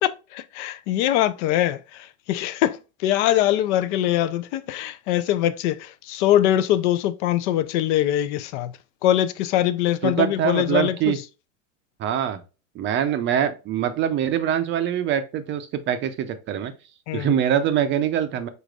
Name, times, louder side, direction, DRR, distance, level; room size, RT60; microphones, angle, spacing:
voice 1, 0.0-1.8 2.3-2.8 3.0-8.7 9.0-11.1 17.1-17.3, left 12 dB, 65° left, 0.6 m, -22 dB
voice 2, 10.0-11.2 12.0-12.4 12.8-16.7 17.1-18.5, right 9 dB, 30° right, 0.5 m, -23 dB
4.9 x 4.1 x 2.4 m
supercardioid pair, 135°, 38 cm